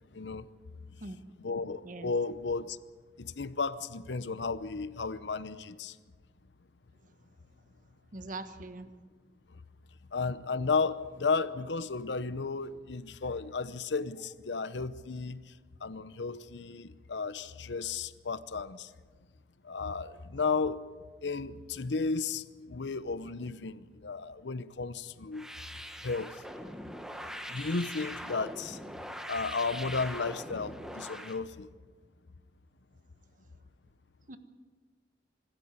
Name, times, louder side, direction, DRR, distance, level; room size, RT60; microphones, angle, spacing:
voice 1, 0.1-0.5 1.4-2.8 3.2-6.0 9.5-9.6 10.1-15.5 15.8-18.9 19.6-20.8 21.2-25.5 26.0-26.4 27.5-28.8 29.3-31.7, left 4 dB, 90° left, 0.8 m, -34 dB
voice 2, 8.1-8.9 34.3-34.4, right 2 dB, 50° right, 1.3 m, -41 dB
sound 1, 25.3-31.4, equal, 5° right, 1.2 m, -42 dB
25.5 x 13.0 x 8.2 m
head